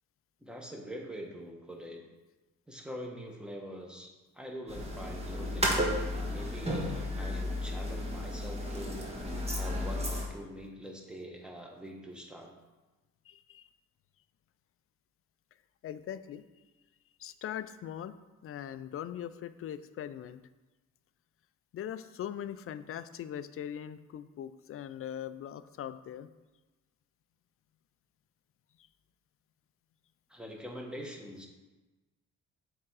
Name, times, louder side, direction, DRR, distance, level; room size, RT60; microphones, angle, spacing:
voice 1, 0.4-2.0 2.7-4.1 4.3-6.0 6.3-9.1 9.5-12.5 30.3-31.5, equal, 5° right, 0 dB, 1.2 m, -44 dB
sound 1, 4.7-10.3, left 1 dB, 20° right, 1.4 m, -33 dB
voice 2, 13.3-13.7 15.8-16.4 17.2-18.1 18.4-20.4 21.7-26.3, left 10 dB, 50° left, 13 dB, 0.4 m, -41 dB
7.3 x 3.7 x 4.7 m, 1.1 s
cardioid pair, 90°, 30 cm